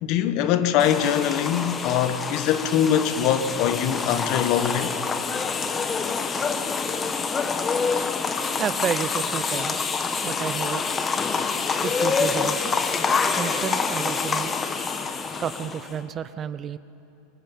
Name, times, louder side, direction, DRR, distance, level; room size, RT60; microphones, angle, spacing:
voice 1, 0.0-4.9, left 9 dB, 50° left, 1.1 m, -23 dB
sound 1, 0.8-15.9, left 5 dB, 20° left, 1.1 m, -26 dB
voice 2, 8.6-9.9 10.2-10.9 11.8-12.7 13.4-14.6 15.4-16.8, right 8 dB, 30° right, 0.5 m, -31 dB
24.5 x 15.5 x 7.3 m
supercardioid pair, 135°, 0 cm